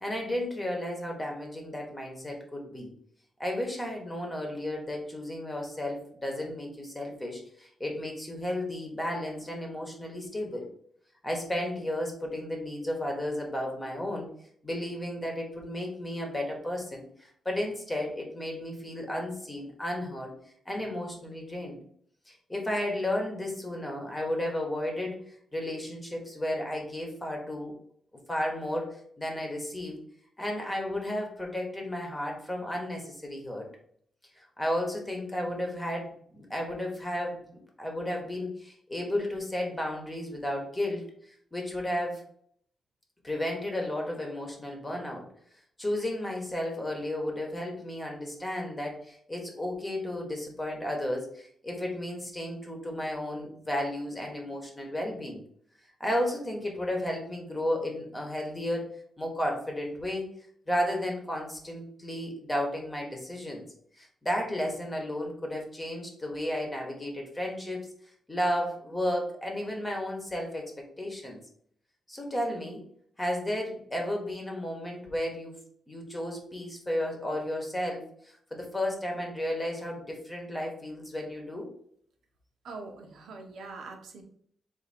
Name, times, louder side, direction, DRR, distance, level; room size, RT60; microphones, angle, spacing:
voice 1, 0.0-2.9 3.4-10.7 11.2-14.3 14.6-20.3 20.7-21.8 22.3-27.7 28.3-30.0 30.4-33.7 34.4-37.4 37.8-42.2 43.2-45.3 45.8-55.4 56.0-58.9 59.2-60.3 60.7-63.6 64.0-67.9 68.3-71.4 72.1-72.8 73.2-75.6 75.9-81.7, left 1 dB, 15° left, 1 dB, 1.1 m, -33 dB
voice 2, 82.6-84.2, right 3 dB, 75° right, 3 dB, 0.9 m, -43 dB
4.1 x 2.7 x 4.2 m, 0.63 s
wide cardioid pair, 135°, 0 cm